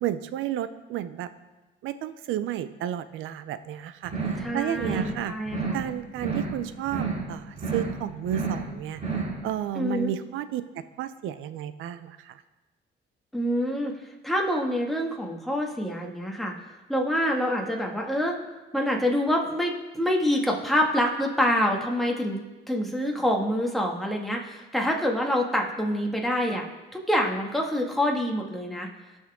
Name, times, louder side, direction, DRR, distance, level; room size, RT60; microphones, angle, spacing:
voice 1, 0.0-1.3 1.8-4.1 4.5-5.3 5.7-9.0 9.4-12.4, right 11 dB, 90° right, 13 dB, 0.6 m, -32 dB
sound 1, 4.0-4.5 4.7-5.2 5.4-5.9 6.1-6.6 6.8-7.3 7.5-8.0 8.2-8.7 8.9-9.4, right 4 dB, 35° right, 2.4 m, -30 dB
voice 2, 4.4-5.8 9.7-10.1 13.3-13.9 14.2-16.5 16.9-18.4 18.7-22.4 22.7-26.7 26.9-28.9, equal, ahead, 0 dB, 1.9 m, -26 dB
17.5 x 6.3 x 3.7 m, 1.1 s
cardioid pair, 90°, 20 cm